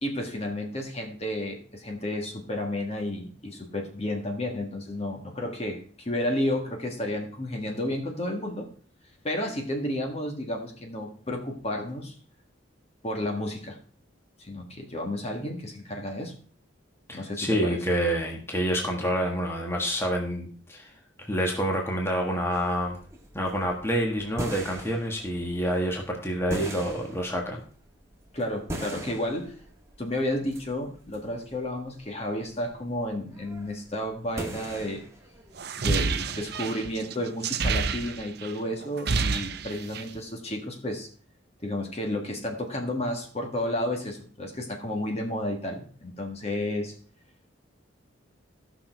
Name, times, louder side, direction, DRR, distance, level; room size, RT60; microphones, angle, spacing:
voice 1, 0.0-8.7 9.2-12.2 13.0-13.8 14.4-16.4 17.1-17.8 28.3-29.6 30.0-35.1 35.8-41.1 41.6-47.0, left 1 dB, 30° left, 1.6 m, -32 dB
voice 2, 17.1-20.9 21.2-23.0 23.3-27.6, equal, 15° left, 1.5 m, -28 dB
sound 1, 22.5-35.7, right 1 dB, 15° right, 1.5 m, -41 dB
sound 2, 35.6-38.5 38.8-40.2, right 4 dB, 55° right, 0.7 m, -28 dB
14.5 x 6.2 x 4.5 m
head